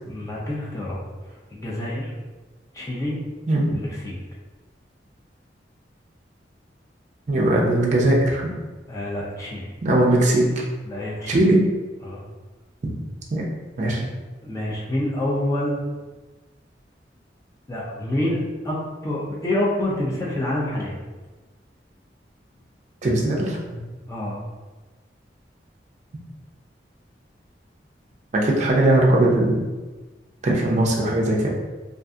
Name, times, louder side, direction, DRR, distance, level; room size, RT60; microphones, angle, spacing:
voice 1, 0.1-1.0 1.3-2.1 2.7-3.2 3.7-4.2 8.9-9.7 10.8-11.4 12.0-12.2 14.4-15.9 17.7-18.8 19.0-21.0 24.1-24.4, left 1 dB, 20° left, -4 dB, 0.5 m, -27 dB
voice 2, 3.5-3.8 7.3-8.5 9.8-10.5 11.3-11.6 12.8-12.9 13.3-13.4 13.8-14.0 23.0-23.8 28.3-29.6 30.4-31.5, right 1 dB, 40° right, -2 dB, 0.4 m, -19 dB
2.6 x 2.4 x 2.3 m, 1.2 s
head